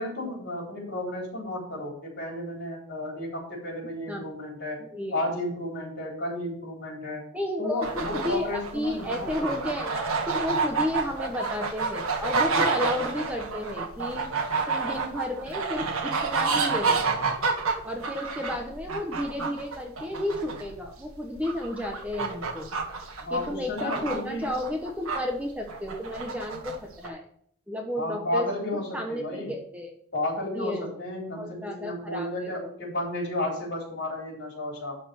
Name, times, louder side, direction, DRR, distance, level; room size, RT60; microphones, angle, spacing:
voice 1, 0.0-4.8 5.1-7.2 7.6-9.6 23.2-24.5 28.0-29.5 30.1-35.0, left 1 dB, 50° left, -2 dB, 4.1 m, -32 dB
voice 2, 4.8-5.2 7.3-14.2 14.7-17.0 17.8-22.7 23.3-27.2 27.7-29.9 30.5-30.9 31.4-32.3, left 1 dB, 5° right, 2 dB, 1.0 m, -32 dB
sound 1, 7.8-25.2 25.7-26.8 27.0-27.1, right 4 dB, 75° right, 1.6 m, -29 dB
11.5 x 4.3 x 6.8 m, 0.64 s
head